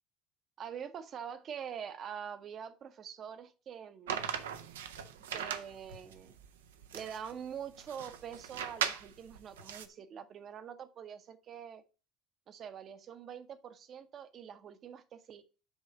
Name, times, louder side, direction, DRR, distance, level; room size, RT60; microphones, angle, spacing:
voice 1, 0.6-4.3 5.3-6.4 6.9-11.8 12.5-15.4, right 8 dB, 45° right, 0.8 m, -45 dB
sound 1, 4.1-9.9, right 8 dB, 80° right, 0.6 m, -39 dB
7.9 x 3.2 x 5.1 m
hypercardioid pair, 65°, 0 cm